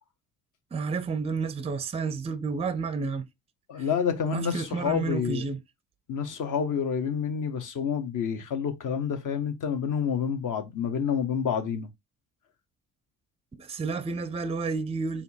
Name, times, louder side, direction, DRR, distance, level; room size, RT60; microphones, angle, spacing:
voice 1, 0.7-3.3 4.3-5.6 13.5-15.2, right 4 dB, 15° right, 0.5 m, -30 dB
voice 2, 3.7-5.5 6.1-11.9, left 7 dB, 50° left, 1.1 m, -28 dB
4.2 x 2.4 x 4.3 m
hypercardioid pair, 50°, 41 cm